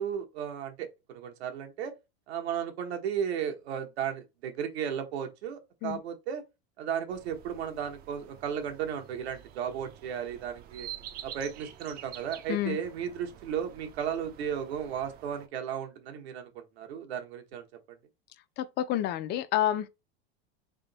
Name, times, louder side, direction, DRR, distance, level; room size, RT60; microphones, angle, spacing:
voice 1, 0.0-1.9 2.3-6.4 6.8-10.9 11.2-18.0, right 8 dB, 90° right, 1.1 m, -35 dB
sound 1, 7.1-15.5, right 11 dB, 30° right, 0.4 m, -48 dB
voice 2, 18.6-19.9, left 12 dB, 35° left, 0.4 m, -29 dB
3.5 x 2.6 x 3.9 m
supercardioid pair, 135°, 31 cm